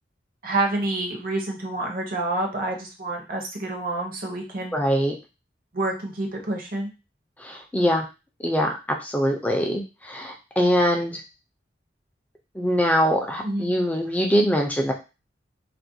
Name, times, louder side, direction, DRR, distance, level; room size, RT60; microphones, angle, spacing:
voice 1, 0.4-4.8 5.7-6.9 13.4-13.7, right 2 dB, 55° right, 2 dB, 0.7 m, -28 dB
voice 2, 4.7-5.1 7.4-8.0 8.4-11.2 12.5-14.9, equal, 10° left, 2 dB, 0.4 m, -23 dB
2.4 x 2.1 x 2.6 m, 0.29 s
head